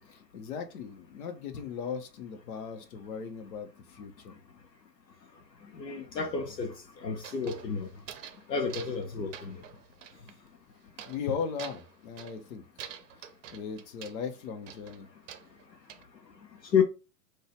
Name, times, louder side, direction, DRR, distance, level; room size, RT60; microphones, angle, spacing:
voice 1, 0.1-4.4 11.1-12.6 13.2-15.1, left 6 dB, 60° left, 1.2 m, -38 dB
voice 2, 5.7-6.7 7.0-7.9 8.5-9.6 16.7-16.8, left 6 dB, 80° left, 1.0 m, -30 dB
sound 1, 7.2-8.4 8.7-9.1 9.3-10.3 11.0-11.3 11.6-12.4 12.8-14.2 14.7-16.0, right 9 dB, 50° right, 0.7 m, -46 dB
4.0 x 2.7 x 4.5 m
figure-of-eight pair, 110°, 49 cm